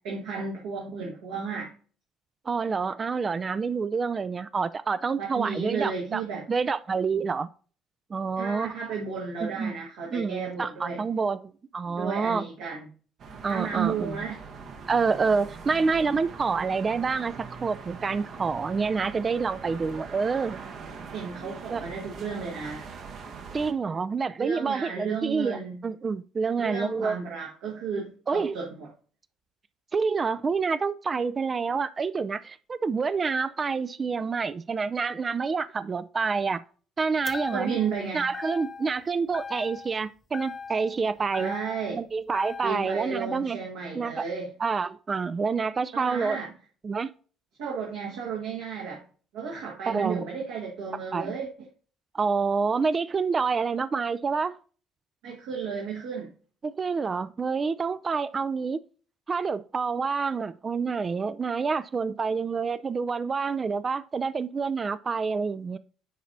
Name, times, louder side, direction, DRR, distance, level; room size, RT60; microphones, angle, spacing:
voice 1, 0.0-1.7 5.2-6.4 8.4-11.0 12.0-12.9 13.4-14.4 21.1-22.9 24.4-25.8 26.6-28.9 37.5-38.3 41.4-42.0 42.6-44.5 45.9-46.5 47.6-49.0 49.3-51.5 55.2-56.3, right 6 dB, 70° right, 1.6 m, -33 dB
voice 2, 2.5-6.2 6.5-7.5 8.1-8.7 9.4-9.7 10.1-12.4 13.4-14.3 14.9-20.6 21.7-21.8 23.5-27.2 28.3-28.6 29.9-36.6 37.0-37.8 38.1-41.5 41.9-43.6 44.0-44.2 44.6-46.4 46.8-47.1 49.9-50.3 51.1-51.4 52.1-54.6 56.6-58.8 59.3-65.8, right 5 dB, 35° right, 0.3 m, -28 dB
sound 1, 13.2-23.7, right 5 dB, 55° right, 1.0 m, -42 dB
sound 2, 37.2-38.0 38.3-39.0 39.3-40.0 40.3-42.0 42.3-43.0, left 5 dB, 35° left, 0.7 m, -39 dB
10.0 x 4.1 x 2.6 m
hypercardioid pair, 55°, 0 cm